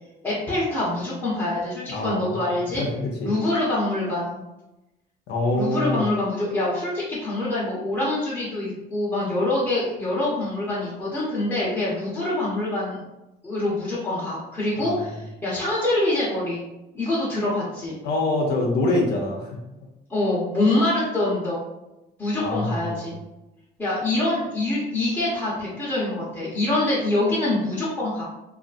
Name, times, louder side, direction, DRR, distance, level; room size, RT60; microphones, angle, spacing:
voice 1, 0.2-2.8 3.2-4.4 5.5-13.0 13.4-16.6 16.9-18.0 20.1-21.6 22.2-23.2 23.8-28.2, left 2 dB, 15° left, -9 dB, 0.8 m, -25 dB
voice 2, 1.9-2.3 2.8-3.3 5.3-6.0 14.8-15.0 18.0-19.9 22.4-23.1, left 2 dB, 80° left, 0 dB, 0.6 m, -25 dB
2.5 x 2.4 x 2.4 m, 0.96 s
cardioid pair, 110°, 17 cm